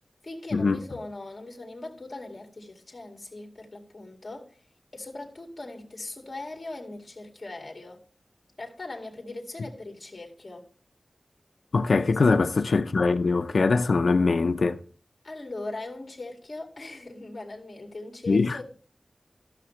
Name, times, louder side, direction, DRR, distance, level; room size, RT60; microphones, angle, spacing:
voice 1, 0.2-4.6 4.9-8.0 8.6-10.7 12.0-12.4 15.2-18.6, left 2 dB, 40° left, 2.2 m, -40 dB
voice 2, 11.7-14.8 18.3-18.6, left 4 dB, 85° left, 0.5 m, -22 dB
14.0 x 6.6 x 3.1 m
wide cardioid pair, 85°, 0 cm